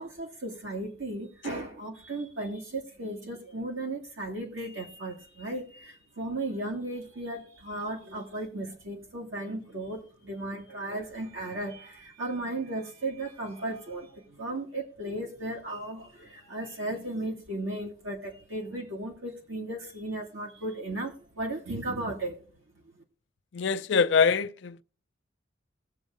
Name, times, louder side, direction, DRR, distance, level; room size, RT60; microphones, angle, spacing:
voice 1, 0.0-22.4 22.9-23.0, right 2 dB, 85° right, 2.1 m, -35 dB
voice 2, 23.5-24.8, left 5 dB, 60° left, 0.4 m, -24 dB
19.5 x 7.2 x 2.5 m
head